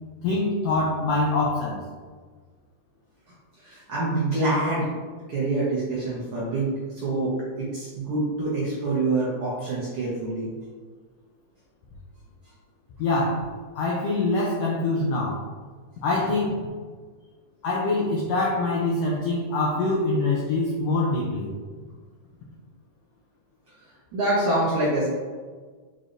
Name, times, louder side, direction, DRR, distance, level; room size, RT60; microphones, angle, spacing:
voice 1, 0.2-1.8 13.0-13.5 13.7-15.4 16.0-16.6 17.6-21.5, left 2 dB, 85° left, -4 dB, 1.4 m, -24 dB
voice 2, 3.6-4.9 5.3-10.5 24.1-25.1, right 2 dB, 70° right, -8 dB, 1.3 m, -26 dB
6.4 x 3.1 x 2.5 m, 1.5 s
omnidirectional pair, 3.6 m